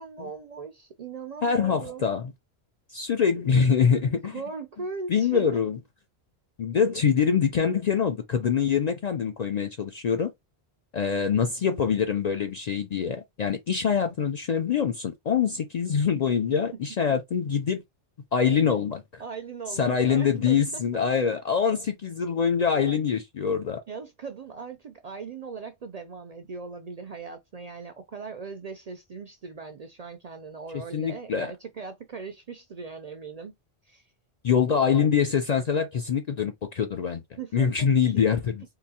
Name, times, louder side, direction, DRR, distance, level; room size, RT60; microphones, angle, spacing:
voice 1, 0.0-2.1 4.2-5.6 16.5-16.8 19.2-20.8 22.7-22.8 23.9-33.5 33.8-34.1 37.4-37.9 38.1-38.2, right 4 dB, 55° right, 0.4 m, -39 dB
voice 2, 1.4-2.3 2.9-4.4 5.1-5.8 6.6-10.3 10.9-17.8 18.3-19.2 19.7-23.8 30.9-31.5 34.4-37.2 37.5-38.6, left 7 dB, 55° left, 0.4 m, -24 dB
3.8 x 2.6 x 2.8 m
omnidirectional pair, 1.1 m